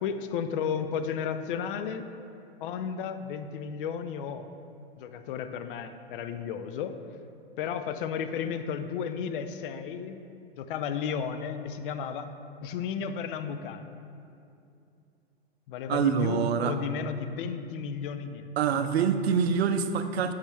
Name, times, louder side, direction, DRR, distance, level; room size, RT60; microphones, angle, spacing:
voice 1, 0.0-2.1 2.6-4.5 5.0-7.0 7.6-10.2 10.6-12.3 12.6-13.9 15.7-18.5 18.8-18.9, left 7 dB, 55° left, 9 dB, 0.5 m, -33 dB
voice 2, 15.9-16.7 18.6-20.3, right 7 dB, 75° right, 9 dB, 0.5 m, -25 dB
8.1 x 5.5 x 3.2 m, 2.6 s
hypercardioid pair, 110°, 31 cm